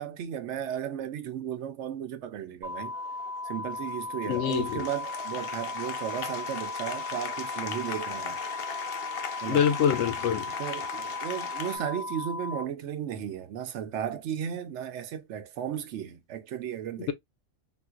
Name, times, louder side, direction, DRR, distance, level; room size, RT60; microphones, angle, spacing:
voice 1, 0.0-3.0 3.4-8.4 9.4-9.6 10.4-17.1, right 9 dB, 70° right, 0.9 m, -35 dB
Applause, 2.6-11.8, left 8 dB, 60° left, 0.7 m, -39 dB
sound 1, 2.6-12.6, left 2 dB, 25° right, 0.7 m, -36 dB
voice 2, 4.3-4.8 9.5-10.5, left 8 dB, 85° left, 1.0 m, -25 dB
3.7 x 2.5 x 2.3 m
omnidirectional pair, 1.3 m